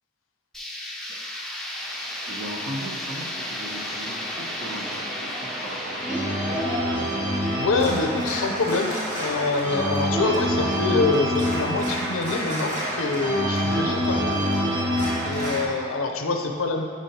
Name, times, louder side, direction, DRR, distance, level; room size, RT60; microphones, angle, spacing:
sound 1, 0.5-10.3, left 1 dB, ahead, 0.5 m, -35 dB
voice 1, 2.2-6.4, equal, 55° right, 0 dB, 0.7 m, -38 dB
Organ, 2.5-15.6, equal, 35° right, 1.3 m, -27 dB
voice 2, 7.6-14.8 15.2-16.8, left 3 dB, 70° left, 4 dB, 0.6 m, -26 dB
9.0 x 5.0 x 2.8 m, 2.1 s
head